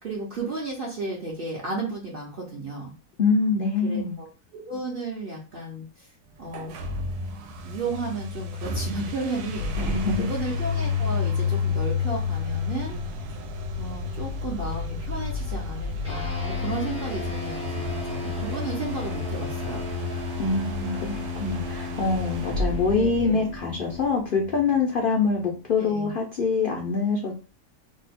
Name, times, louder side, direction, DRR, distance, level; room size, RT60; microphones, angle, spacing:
voice 1, 0.0-2.9 3.8-4.3 4.5-6.1 6.4-6.8 7.6-9.9 10.2-13.0 13.8-19.8 22.0-22.6 23.0-23.4 25.8-26.1, right 3 dB, 55° right, -2 dB, 0.6 m, -33 dB
voice 2, 3.2-4.2 9.8-10.3 20.4-27.3, left 4 dB, 65° left, 0 dB, 0.5 m, -25 dB
sound 1, 6.5-24.0, left 4 dB, 80° right, 1.1 m, -31 dB
sound 2, 16.0-25.8, left 2 dB, 10° right, 0.3 m, -35 dB
2.7 x 2.2 x 4.1 m, 0.35 s
omnidirectional pair, 1.7 m